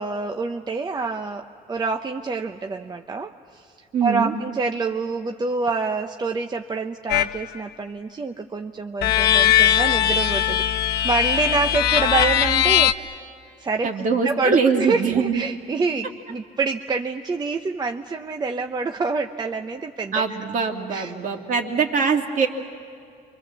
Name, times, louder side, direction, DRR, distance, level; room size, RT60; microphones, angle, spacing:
voice 1, 0.0-3.6 4.0-10.6 11.0-13.1 13.6-13.9 14.2-20.2 20.9-21.1, right 4 dB, 25° right, 5 dB, 0.8 m, -26 dB
voice 2, 3.9-4.3 13.8-15.4 20.1-22.5, right 5 dB, 50° right, 2 dB, 2.6 m, -22 dB
sound 1, 7.1-7.4 9.0-12.9, left 11 dB, 75° left, 0.8 m, -19 dB
29.0 x 24.5 x 7.4 m, 2.3 s
cardioid pair, 110°, 17 cm